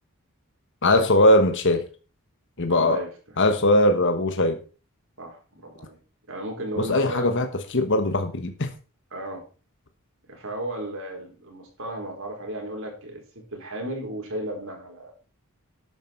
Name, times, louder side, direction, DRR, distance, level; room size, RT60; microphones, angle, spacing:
voice 1, 0.8-1.8 2.6-3.0 3.4-4.6 6.8-8.7, left 1 dB, 55° left, 6 dB, 1.4 m, -20 dB
voice 2, 2.7-3.1 5.2-6.0 6.3-7.4 9.1-9.4 10.3-13.2 13.5-15.1, right 1 dB, 60° right, 3 dB, 4.4 m, -34 dB
12.0 x 9.3 x 4.5 m, 0.35 s
head